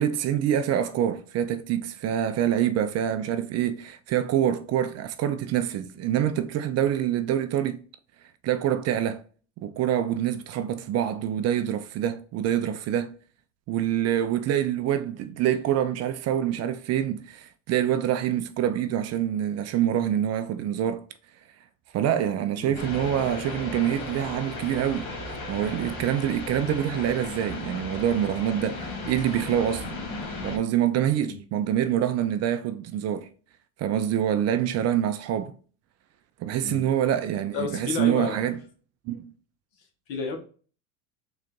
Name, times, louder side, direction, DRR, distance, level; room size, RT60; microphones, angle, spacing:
voice 1, 0.0-7.8 8.4-9.2 9.6-13.1 13.7-21.0 21.9-25.1 25.5-29.9 30.4-33.3 33.8-35.5 36.4-38.6 39.1-39.3, right 10 dB, 40° right, 0.4 m, -26 dB
sound 1, 22.7-30.6, left 2 dB, 85° left, 1.6 m, -35 dB
voice 2, 37.5-38.4 40.1-40.4, left 5 dB, 60° left, 1.2 m, -31 dB
3.8 x 2.5 x 3.6 m
supercardioid pair, 95°, 40 cm